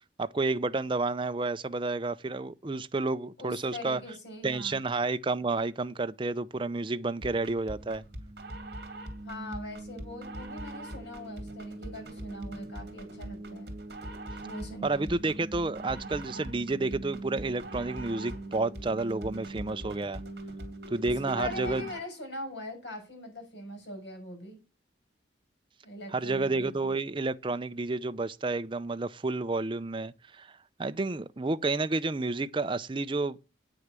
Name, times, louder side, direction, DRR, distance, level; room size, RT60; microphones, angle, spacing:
voice 1, 0.2-4.0 4.4-8.0 14.8-20.2 20.9-21.8 26.1-33.4, right 3 dB, 25° right, 0.5 m, -30 dB
voice 2, 3.4-4.8 9.2-13.7 14.4-15.1 21.0-24.6 25.8-26.9, left 1 dB, 65° left, 6.5 m, -42 dB
sound 1, 7.2-22.2, right 1 dB, 55° right, 2.5 m, -41 dB
8.8 x 6.5 x 7.4 m
head